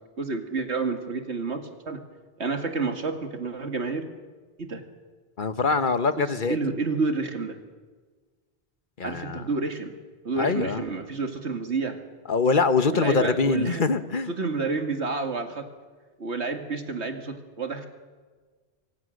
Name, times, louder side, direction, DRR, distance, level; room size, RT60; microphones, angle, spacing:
voice 1, 0.2-2.0 2.4-4.0 4.6-4.8 6.2-7.6 9.0-9.9 10.2-12.0 12.9-13.8 14.3-15.7 16.2-17.9, right 4 dB, 80° right, 5 dB, 2.4 m, -29 dB
voice 2, 5.4-6.6 9.0-9.5 10.4-10.8 12.3-14.3, left 4 dB, 50° left, 10 dB, 1.3 m, -24 dB
27.5 x 23.5 x 6.5 m, 1.4 s
omnidirectional pair, 1.1 m